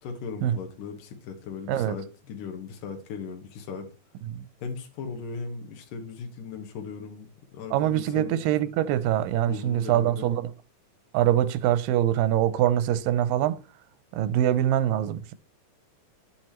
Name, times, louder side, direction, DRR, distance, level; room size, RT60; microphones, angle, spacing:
voice 1, 0.0-3.9 4.6-7.3 7.5-8.4 9.5-10.3, left 5 dB, 75° left, 3.0 m, -37 dB
voice 2, 7.7-10.5 11.1-13.6 14.1-15.3, right 11 dB, 90° right, 2.4 m, -24 dB
11.0 x 7.5 x 3.1 m
omnidirectional pair, 3.9 m